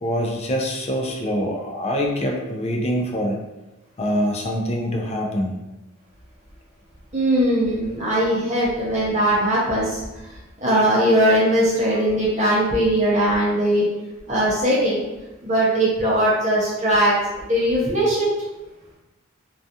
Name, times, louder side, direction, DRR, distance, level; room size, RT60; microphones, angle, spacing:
voice 1, 0.0-3.4 4.0-5.6, equal, 30° left, 0 dB, 0.3 m, -24 dB
voice 2, 7.1-10.0 10.6-13.8 14.3-15.0 15.4-17.1 17.5-18.3, right 1 dB, 35° right, -6 dB, 0.6 m, -19 dB
2.3 x 2.3 x 2.7 m, 1.0 s
head